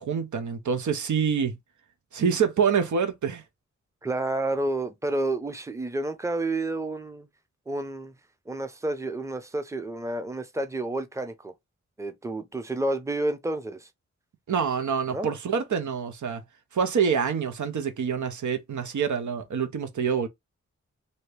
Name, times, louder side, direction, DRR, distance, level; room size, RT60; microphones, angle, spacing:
voice 1, 0.0-1.6 2.1-3.4 14.5-16.4 16.7-20.3, right 6 dB, 80° right, 0.7 m, -26 dB
voice 2, 4.0-7.3 7.7-8.1 8.5-11.5 12.0-13.9 15.1-15.3, right 2 dB, 10° right, 0.6 m, -30 dB
2.8 x 2.7 x 3.3 m
cardioid pair, 55°, 29 cm